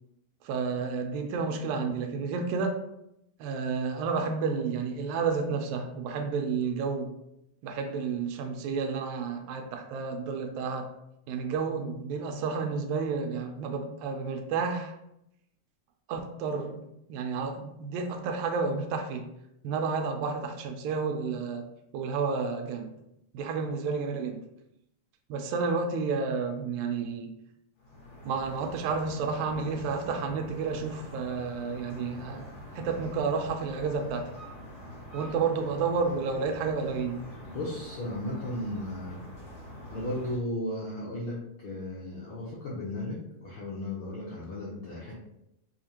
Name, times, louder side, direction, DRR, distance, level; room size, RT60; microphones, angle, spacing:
voice 1, 0.4-2.8 3.4-7.1 7.6-10.9 11.3-14.9 16.1-16.8 17.1-19.3 19.6-21.7 21.9-22.9 23.3-24.4 25.3-27.3 28.3-32.5 32.8-34.3 35.1-37.2, right 5 dB, 85° right, 4 dB, 1.9 m, -31 dB
sound 1, 27.8-40.4, left 1 dB, 60° left, 2.1 m, -45 dB
voice 2, 37.5-39.2 39.9-45.1, left 1 dB, 85° left, -6 dB, 1.1 m, -35 dB
4.9 x 2.4 x 2.8 m, 0.82 s
omnidirectional pair, 3.3 m